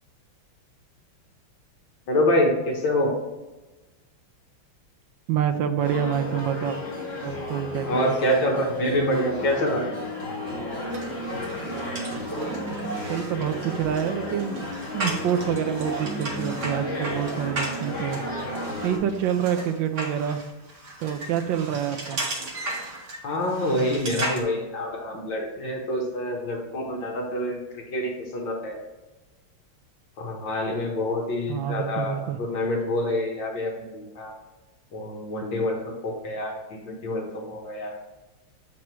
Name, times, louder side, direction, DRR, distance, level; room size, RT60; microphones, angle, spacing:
voice 1, 2.1-3.2 7.8-9.8 23.2-28.8 30.2-34.3 34.9-37.9, left 1 dB, 65° left, 0 dB, 1.7 m, -26 dB
voice 2, 5.3-6.8 7.2-8.1 13.0-14.6 14.9-18.2 18.8-20.4 21.0-22.2 31.5-32.4, right 9 dB, 75° right, 7 dB, 1.2 m, -27 dB
sound 1, 5.8-19.0, left 1 dB, 35° left, 1.4 m, -33 dB
sound 2, 10.9-24.4, right 2 dB, 45° right, 1.2 m, -36 dB
7.3 x 4.6 x 3.0 m, 1.1 s
omnidirectional pair, 2.4 m